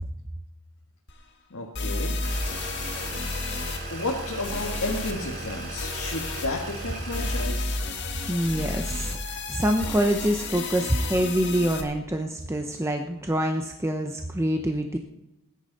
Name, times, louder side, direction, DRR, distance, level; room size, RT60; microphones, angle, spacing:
sound 1, 1.1-1.2 1.7-3.8 4.4-5.1 5.8-6.5 7.1-11.8, left 3 dB, 50° left, 1.7 m, -31 dB
voice 1, 1.5-2.2 3.9-7.8, left 2 dB, 75° left, -1 dB, 1.7 m, -32 dB
sound 2, 2.2-7.4, right 1 dB, 45° right, 6.3 m, -36 dB
voice 2, 8.3-15.0, equal, 10° right, 4 dB, 0.7 m, -26 dB
19.0 x 10.0 x 4.1 m, 0.93 s
head